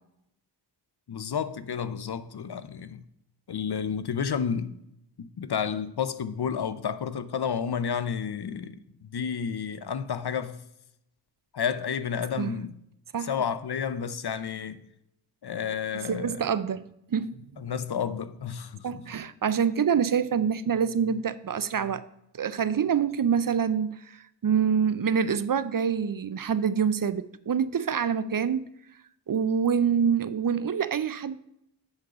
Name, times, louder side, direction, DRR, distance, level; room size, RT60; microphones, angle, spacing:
voice 1, 1.1-3.0 3.5-4.8 5.2-8.8 9.1-10.6 11.5-12.8 13.2-14.8 15.4-16.4 17.6-19.0, left 7 dB, 60° left, 0.6 m, -31 dB
voice 2, 15.9-16.8 17.1-17.6 18.8-22.0 22.4-28.7 29.3-31.4, right 7 dB, 50° right, 0.5 m, -26 dB
8.0 x 3.9 x 6.7 m
wide cardioid pair, 50°, 45 cm